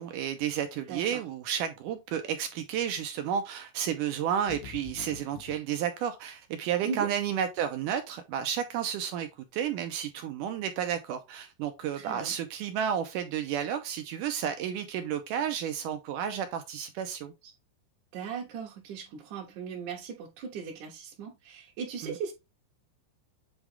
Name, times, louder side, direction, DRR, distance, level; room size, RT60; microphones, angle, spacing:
voice 1, 0.0-17.5 22.0-22.2, right 9 dB, 80° right, 1.9 m, -32 dB
voice 2, 0.9-1.2 6.8-7.1 11.9-12.3 18.1-22.3, right 6 dB, 65° right, 2.3 m, -38 dB
sound 1, 4.5-5.6, left 10 dB, 80° left, 2.2 m, -44 dB
8.2 x 3.5 x 3.5 m
omnidirectional pair, 4.5 m